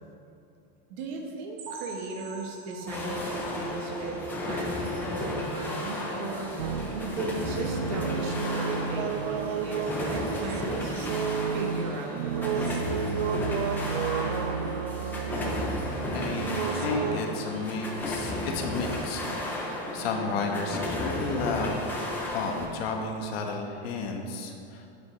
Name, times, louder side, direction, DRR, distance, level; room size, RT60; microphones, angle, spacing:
voice 1, 0.9-11.0 11.5-12.7, right 3 dB, 50° right, 2 dB, 1.1 m, -37 dB
sound 1, 1.6-5.2 5.6-5.8 6.1-6.2 6.7-6.8, right 4 dB, 65° right, 1.5 m, -45 dB
sound 2, 2.9-22.7, left 1 dB, 5° left, 0.5 m, -33 dB
sound 3, 6.6-17.2, right 6 dB, 85° right, 0.5 m, -31 dB
voice 2, 16.1-21.8 22.3-24.9, left 4 dB, 75° left, 3 dB, 1.2 m, -32 dB
9.2 x 8.2 x 3.1 m, 2.6 s
supercardioid pair, 180°, 31 cm